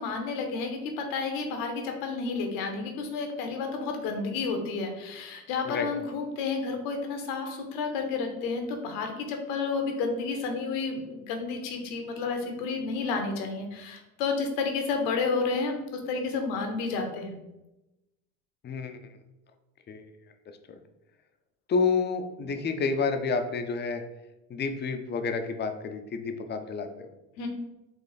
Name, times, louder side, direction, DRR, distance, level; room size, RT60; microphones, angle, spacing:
voice 1, 0.0-17.4 27.4-27.5, left 4 dB, 75° left, 4 dB, 0.9 m, -31 dB
voice 2, 18.6-19.0 19.9-20.0 20.7-20.8 21.7-24.0 24.5-26.9, left 4 dB, 25° left, 7 dB, 0.5 m, -29 dB
4.1 x 2.5 x 4.0 m, 0.97 s
hypercardioid pair, 80°, 42 cm